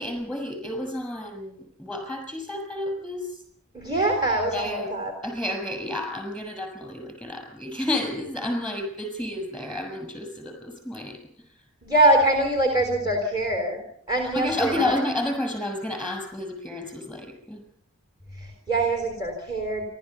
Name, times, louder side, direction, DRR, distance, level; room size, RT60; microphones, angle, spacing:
voice 1, 0.0-3.3 4.5-4.9 5.2-11.2 14.2-17.6, left 1 dB, ahead, 3 dB, 6.6 m, -31 dB
voice 2, 3.7-5.1 11.8-13.8 14.1-14.9 18.4-19.9, right 2 dB, 20° right, 3 dB, 3.8 m, -23 dB
29.5 x 13.0 x 7.0 m, 0.64 s
head